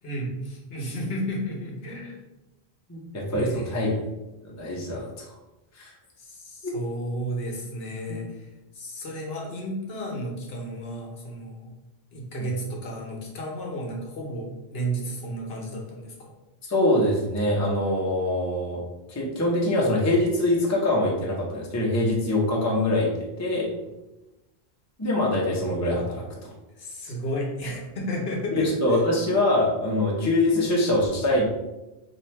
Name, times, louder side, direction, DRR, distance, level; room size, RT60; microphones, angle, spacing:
voice 1, 0.0-2.2 3.3-4.1 6.2-8.5 8.7-11.7 12.1-16.3 26.8-29.0, right 1 dB, 65° left, -1 dB, 1.0 m, -33 dB
voice 2, 2.9-3.9 4.4-5.1 5.8-5.9 6.6-6.7 8.1-8.2 16.7-18.8 19.1-23.7 25.0-26.5 28.5-31.4, left 1 dB, 20° left, -3 dB, 0.6 m, -24 dB
2.8 x 2.6 x 4.3 m, 0.98 s
omnidirectional pair, 1.1 m